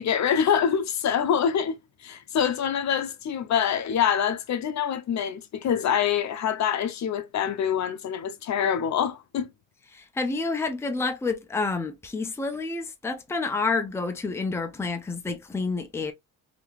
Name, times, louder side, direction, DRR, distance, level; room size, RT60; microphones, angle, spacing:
voice 1, 0.0-1.8 2.0-9.5, left 8 dB, 55° left, 0.7 m, -25 dB
voice 2, 9.9-16.1, left 3 dB, 10° left, 0.5 m, -29 dB
3.4 x 2.8 x 2.3 m
cardioid pair, 100°, 34 cm